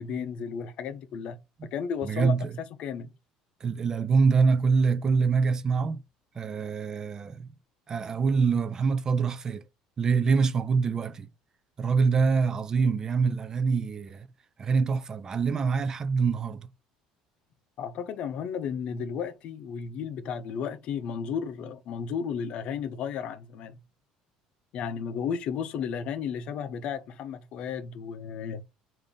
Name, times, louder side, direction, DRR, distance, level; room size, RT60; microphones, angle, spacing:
voice 1, 0.0-1.4 1.6-3.1 17.8-23.8 24.7-28.6, left 7 dB, 55° left, 0.6 m, -33 dB
voice 2, 2.0-2.6 3.6-6.0 6.4-7.5 7.9-9.6 10.0-11.3 11.8-14.3 14.6-16.7, right 5 dB, 30° right, 0.3 m, -25 dB
3.5 x 2.6 x 3.5 m
cardioid pair, 120°, 2 cm